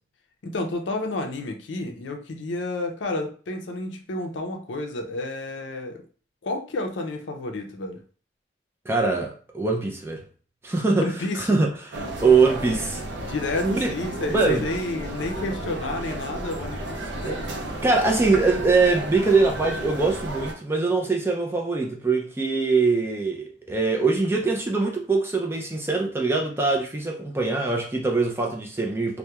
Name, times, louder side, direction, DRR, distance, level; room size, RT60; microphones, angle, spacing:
voice 1, 0.4-6.0 6.4-8.0 10.9-11.6 13.2-17.4, left 2 dB, 80° left, 0.5 m, -30 dB
voice 2, 8.9-10.2 10.6-13.0 13.6-13.9 14.3-14.7 17.8-29.2, right 3 dB, 15° right, 0.3 m, -23 dB
sound 1, 11.9-20.5, right 1 dB, 70° right, 0.5 m, -33 dB
sound 2, 14.3-18.7, equal, 35° left, 0.7 m, -43 dB
2.8 x 2.1 x 2.2 m
head